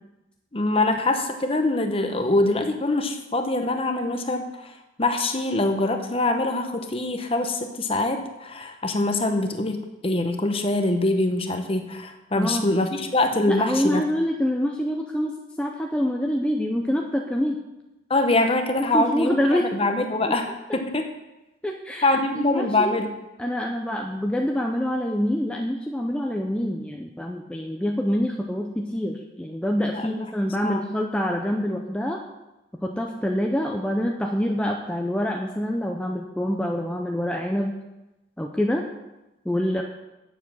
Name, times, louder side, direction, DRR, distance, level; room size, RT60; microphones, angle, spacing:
voice 1, 0.5-4.7 5.0-14.0 18.1-21.1 22.0-23.1 29.9-30.2 30.6-30.8, left 2 dB, 30° left, 6 dB, 0.9 m, -24 dB
voice 2, 12.3-12.7 13.5-17.6 18.9-19.7 20.3-20.4 20.7-20.8 21.6-22.9 23.4-32.2 32.8-37.7 38.4-38.8 39.5-39.8, equal, 5° left, 1 dB, 0.5 m, -26 dB
9.6 x 7.2 x 6.1 m, 0.99 s
head